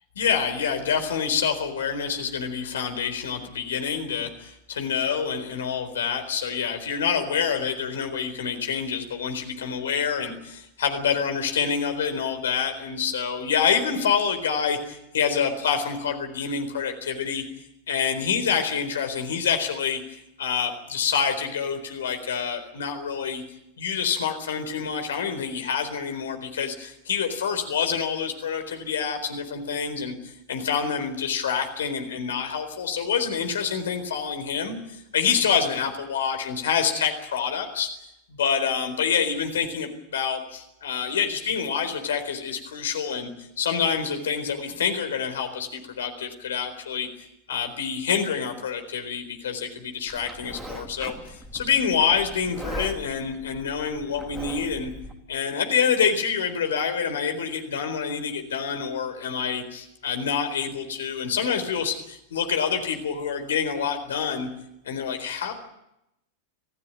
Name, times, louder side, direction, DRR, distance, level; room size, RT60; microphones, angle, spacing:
voice 1, 0.2-17.4 17.9-20.0 20.4-23.4 23.8-34.8 35.1-37.9 38.3-43.3 43.6-47.1 47.5-54.9 55.3-64.5 64.8-65.5, left 7 dB, 65° left, 7 dB, 4.1 m, -27 dB
Livestock farm animals working animals, 50.1-55.1, equal, 15° right, 3.1 m, -39 dB
25.5 x 15.5 x 9.4 m, 0.84 s
figure-of-eight pair, 90°, 0 cm